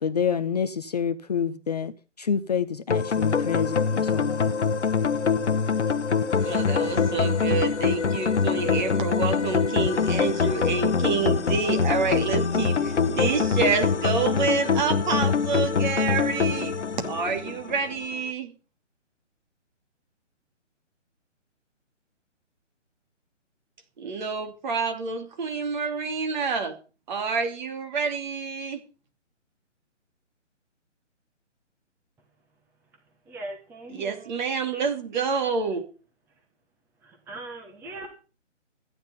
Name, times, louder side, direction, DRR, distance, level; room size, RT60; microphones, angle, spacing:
voice 1, 0.0-4.8, left 7 dB, 35° left, 0.6 m, -28 dB
sound 1, 2.9-18.0, left 5 dB, 65° left, 1.1 m, -24 dB
voice 2, 6.4-16.7 17.1-18.5 24.0-26.8 27.1-28.8 33.9-35.9, right 5 dB, 40° right, 2.8 m, -28 dB
voice 3, 33.3-34.4 37.0-38.1, right 2 dB, 5° right, 1.1 m, -40 dB
14.5 x 9.7 x 5.6 m
figure-of-eight pair, 140°, 37 cm